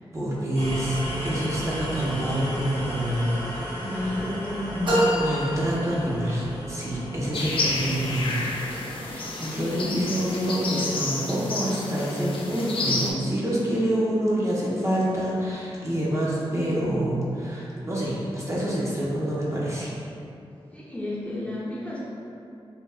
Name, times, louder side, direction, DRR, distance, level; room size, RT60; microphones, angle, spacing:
voice 1, 0.1-1.0 1.2-3.6 4.0-4.1 5.1-8.6 9.0-19.9, right 1 dB, 30° right, -7 dB, 0.7 m, -27 dB
sound 1, 0.5-10.3, equal, 80° right, 0.9 m, -35 dB
voice 2, 3.8-5.1 9.5-10.0 20.7-22.0, left 1 dB, 15° left, -7 dB, 0.6 m, -31 dB
sound 2, 4.8-6.5, equal, 50° right, 1.0 m, -26 dB
sound 3, 7.3-13.1, left 2 dB, 65° left, 0.4 m, -30 dB
3.3 x 2.2 x 3.2 m, 2.7 s
wide cardioid pair, 80°, 10 cm